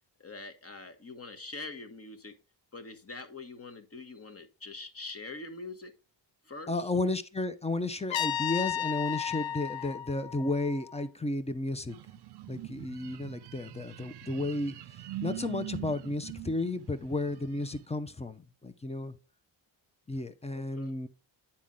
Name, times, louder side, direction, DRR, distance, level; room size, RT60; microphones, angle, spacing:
voice 1, 0.2-2.4 2.7-5.9 6.4-6.9 20.5-21.1, left 3 dB, 30° left, 1.1 m, -44 dB
voice 2, 6.7-12.0 12.5-14.7 15.2-19.2 20.1-21.1, left 2 dB, 15° left, 0.6 m, -33 dB
Trumpet, 8.1-11.0, left 9 dB, 70° left, 0.7 m, -34 dB
sound 1, 11.9-17.9, right 15 dB, 60° right, 0.6 m, -43 dB
9.0 x 4.3 x 3.7 m
cardioid pair, 90°, 47 cm